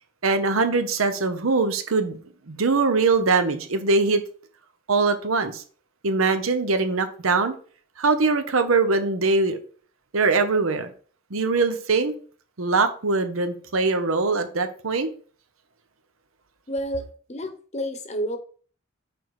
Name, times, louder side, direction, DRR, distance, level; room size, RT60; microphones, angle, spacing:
voice 1, 0.2-2.2 2.5-4.2 4.9-5.6 6.0-7.5 8.0-9.6 10.1-10.9 11.3-12.1 12.6-15.1, right 3 dB, 90° right, 0.9 m, -22 dB
voice 2, 16.7-18.4, equal, 35° left, 0.9 m, -30 dB
6.2 x 4.7 x 4.8 m
head